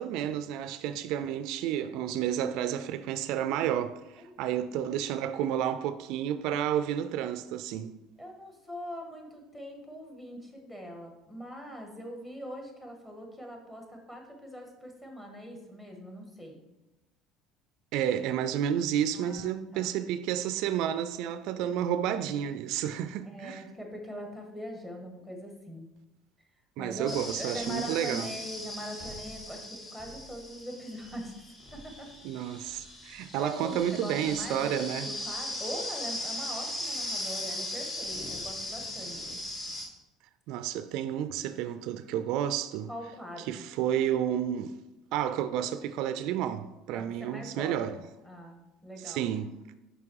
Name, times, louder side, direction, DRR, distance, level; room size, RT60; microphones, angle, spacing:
voice 1, 0.0-7.9 17.9-23.6 26.8-28.3 32.2-35.1 40.5-42.9 43.5-44.8 45.1-48.0 49.0-49.5, right 10 dB, 70° right, 0.4 m, -31 dB
voice 2, 8.2-16.6 19.1-19.9 23.2-25.9 26.8-31.3 31.7-32.1 33.4-34.8 35.0-39.3 42.9-43.7 46.9-49.3, equal, 10° left, 1.6 m, -42 dB
sound 1, 27.1-39.9, left 1 dB, 35° left, 1.6 m, -38 dB
6.0 x 5.5 x 4.7 m
cardioid pair, 120°, 0 cm